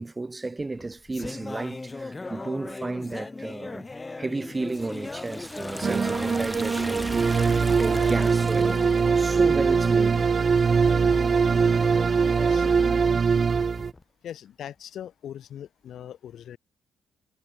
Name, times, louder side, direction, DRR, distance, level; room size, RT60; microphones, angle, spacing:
voice 1, 0.0-3.9 4.2-10.2, right 3 dB, 20° right, 1.3 m, -33 dB
sound 1, 0.6-14.0, left 3 dB, 20° left, 5.5 m, -38 dB
Liquid, 4.6-9.3, equal, 5° left, 6.3 m, -39 dB
sound 2, 5.8-13.9, right 5 dB, 40° right, 0.8 m, -22 dB
voice 2, 12.3-12.7 14.2-16.6, left 10 dB, 70° left, 1.1 m, -40 dB
cardioid pair, 90°, 0 cm